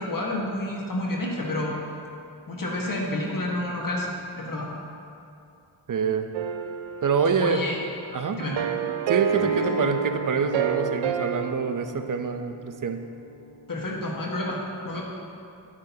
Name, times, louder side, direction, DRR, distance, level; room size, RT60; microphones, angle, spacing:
voice 1, 0.0-1.7 2.5-4.7 7.4-7.8 8.3-8.6 9.4-9.7 13.7-15.0, left 1 dB, 50° left, -2 dB, 1.6 m, -29 dB
voice 2, 5.9-6.3 7.0-7.6 8.1-8.4 9.1-13.0, right 6 dB, 45° right, 7 dB, 0.7 m, -26 dB
sound 1, 6.3-7.9 8.4-11.5, right 8 dB, 85° right, 0.5 m, -29 dB
Acoustic guitar, 9.3-14.5, equal, 75° left, 1.8 m, -37 dB
12.5 x 6.1 x 2.9 m, 2.6 s
cardioid pair, 45°, 44 cm